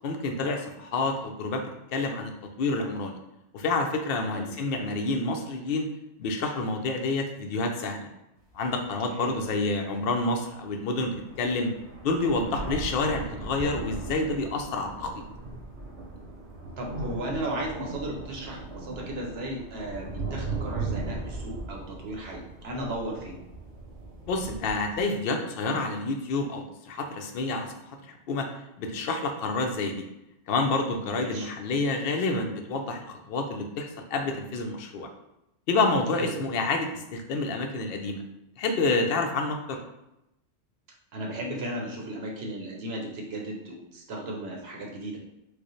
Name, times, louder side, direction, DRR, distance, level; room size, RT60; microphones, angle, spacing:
voice 1, 0.0-1.6 1.9-2.3 2.6-3.2 3.5-5.9 6.2-8.1 8.5-11.7 12.0-15.2 24.3-27.7 28.0-28.5 28.8-30.1 30.5-35.1 35.7-38.2 38.6-39.8, left 3 dB, 65° left, 4 dB, 0.7 m, -28 dB
sound 1, 8.5-8.6 9.2-9.3 10.6-10.7 11.0-25.0, right 3 dB, 80° right, 1.2 m, -38 dB
voice 2, 16.8-23.4 31.2-31.5 36.2-36.5 41.1-45.2, right 1 dB, 65° right, 0 dB, 0.9 m, -35 dB
4.8 x 2.0 x 3.0 m, 0.89 s
omnidirectional pair, 1.2 m